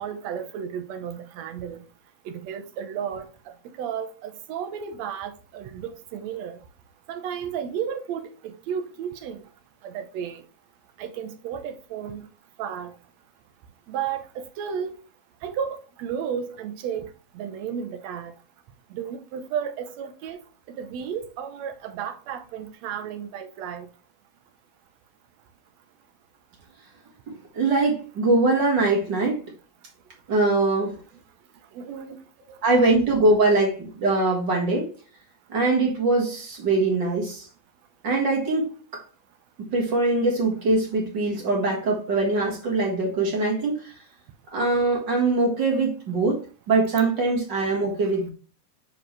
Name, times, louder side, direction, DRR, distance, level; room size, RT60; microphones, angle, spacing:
voice 1, 0.0-1.8 2.2-6.6 7.1-9.4 9.8-10.4 11.0-12.2 12.6-12.9 13.9-14.9 15.4-17.1 17.3-18.3 18.9-20.4 20.7-23.9 31.7-32.2, right 8 dB, 75° right, 1.6 m, -33 dB
voice 2, 27.5-29.4 30.3-31.0 32.5-34.9 35.5-37.5 38.0-39.0 39.7-43.9 44.5-46.4 46.7-48.3, right 2 dB, 40° right, 1.8 m, -22 dB
9.0 x 4.5 x 3.3 m
omnidirectional pair, 3.9 m